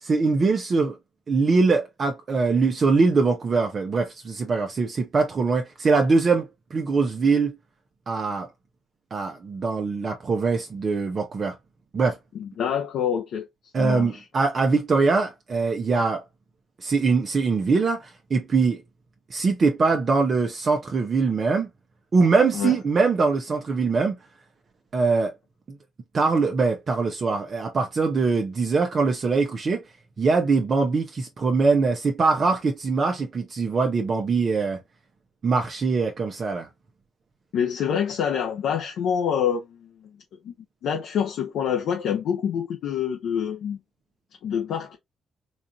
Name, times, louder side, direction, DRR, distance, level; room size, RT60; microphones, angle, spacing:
voice 1, 0.0-1.0 1.3-7.6 8.1-8.5 9.1-11.6 11.9-12.2 13.7-16.2 16.8-18.8 19.3-21.7 22.1-24.1 24.9-25.3 26.1-29.8 30.2-34.8 35.4-36.7, right 4 dB, 45° right, 0.9 m, -22 dB
voice 2, 12.3-13.4 13.8-14.2 22.5-22.7 37.5-40.1 40.4-40.5 40.8-43.8 44.4-45.0, left 8 dB, 75° left, 0.9 m, -26 dB
4.1 x 2.6 x 2.8 m
cardioid pair, 90°, 0 cm